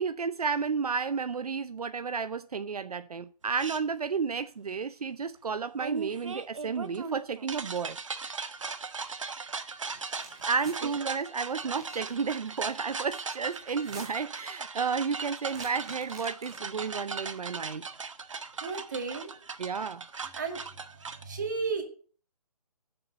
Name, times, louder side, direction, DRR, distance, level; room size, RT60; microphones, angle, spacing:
voice 1, 0.0-8.0 10.5-17.9 19.6-20.0, right 5 dB, 65° right, 0.6 m, -32 dB
sound 1, 3.6-3.8 5.8-21.2, right 5 dB, 50° right, 1.2 m, -38 dB
sound 2, 9.8-10.8 11.6-12.1 13.7-14.4 15.4-16.8, right 4 dB, 10° right, 0.6 m, -48 dB
voice 2, 18.6-19.3 20.3-20.6 20.9-21.8, right 4 dB, 30° right, 2.1 m, -34 dB
9.6 x 7.1 x 9.2 m
hypercardioid pair, 175°, 20 cm